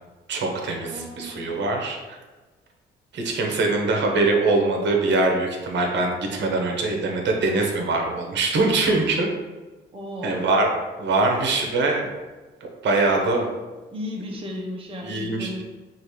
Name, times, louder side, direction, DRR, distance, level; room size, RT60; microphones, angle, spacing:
voice 1, 0.3-2.2 3.1-9.3 10.2-10.7 11.0-12.1 12.8-13.5 15.0-15.6, right 3 dB, 65° right, 2 dB, 0.9 m, -23 dB
voice 2, 0.8-1.4 9.9-10.5 13.9-15.6, left 1 dB, 25° right, -1 dB, 0.8 m, -34 dB
5.2 x 2.5 x 3.2 m, 1.2 s
cardioid pair, 90°, 20 cm